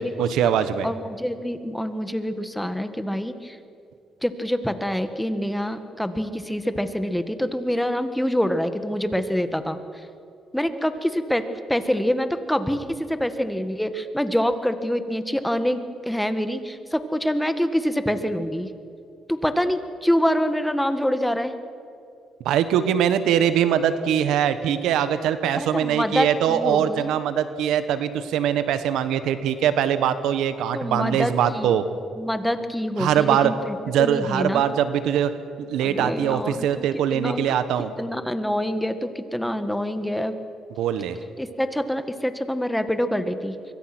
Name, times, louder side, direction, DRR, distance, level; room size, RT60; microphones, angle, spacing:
voice 1, 0.0-0.9 22.4-31.8 33.0-33.5 33.9-35.3 35.6-37.9 40.8-41.2, right 9 dB, 85° right, 11 dB, 1.3 m, -22 dB
voice 2, 0.8-3.6 4.2-10.1 10.5-18.7 19.3-21.5 25.5-27.1 30.7-31.8 32.2-34.6 35.8-37.4 38.0-40.4 41.4-43.6, equal, 5° left, 9 dB, 1.8 m, -26 dB
26.0 x 24.0 x 6.2 m, 2.5 s
cardioid pair, 90°, 0 cm